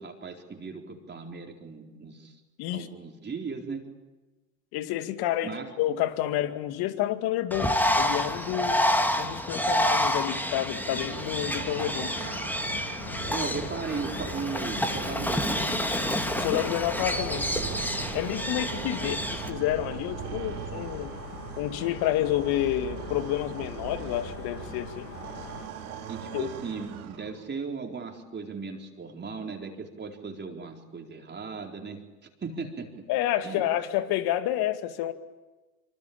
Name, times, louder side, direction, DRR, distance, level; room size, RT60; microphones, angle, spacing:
voice 1, 0.0-2.4 2.7-3.9 5.4-5.7 13.3-16.2 19.0-19.1 26.1-33.0 33.4-33.7, right 4 dB, 25° right, 2 dB, 4.2 m, -37 dB
voice 2, 4.7-12.3 16.3-17.5 18.1-21.1 21.6-25.1 26.3-26.5 33.1-35.1, left 13 dB, 60° left, 9 dB, 2.4 m, -29 dB
Bird, 7.5-19.5, left 1 dB, 5° left, 2.8 m, -29 dB
sound 1, 10.6-27.6, right 8 dB, 80° right, 4.6 m, -40 dB
sound 2, 11.0-25.7, left 10 dB, 80° left, 1.8 m, -44 dB
26.0 x 26.0 x 8.8 m, 1.2 s
hypercardioid pair, 85°, 44 cm